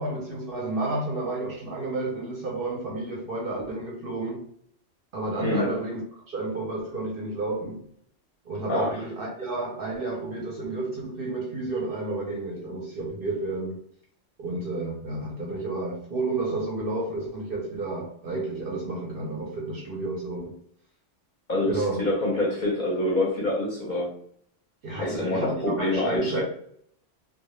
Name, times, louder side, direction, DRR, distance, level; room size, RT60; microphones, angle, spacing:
voice 1, 0.0-4.5 5.1-6.0 6.3-7.9 8.5-13.8 14.4-20.6 21.7-22.1 24.8-26.4, right 2 dB, 60° right, 0.6 m, -31 dB
voice 2, 21.5-24.1 25.0-26.4, left 2 dB, 50° left, 0.6 m, -26 dB
2.1 x 2.1 x 3.0 m
omnidirectional pair, 1.3 m